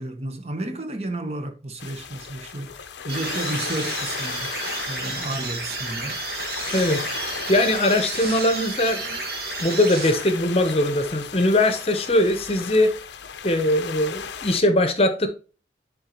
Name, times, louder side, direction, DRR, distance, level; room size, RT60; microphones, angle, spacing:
voice 1, 0.0-4.6 4.9-6.2, right 1 dB, 35° right, 0.9 m, -32 dB
sound 1, 1.8-14.6, left 6 dB, 85° left, 0.6 m, -36 dB
sound 2, 3.1-10.6, right 4 dB, 55° right, 1.5 m, -32 dB
voice 2, 7.5-9.2 9.6-12.9 13.4-15.3, left 1 dB, 35° left, 0.8 m, -21 dB
10.5 x 3.9 x 3.0 m
head